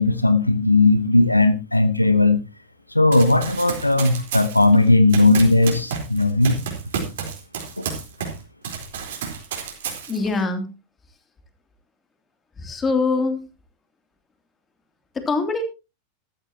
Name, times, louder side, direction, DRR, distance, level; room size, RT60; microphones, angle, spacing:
voice 1, 0.0-2.4 2.9-6.6 7.8-7.9, left 2 dB, 85° left, 13 dB, 0.9 m, -17 dB
Run, 3.1-8.4 8.6-10.4, right 6 dB, 60° right, 4.1 m, -31 dB
voice 2, 10.1-10.7 12.6-13.4 15.1-15.6, left 3 dB, 15° left, 5 dB, 2.9 m, -23 dB
14.5 x 13.5 x 2.9 m, 0.28 s
figure-of-eight pair, 90°, 0 cm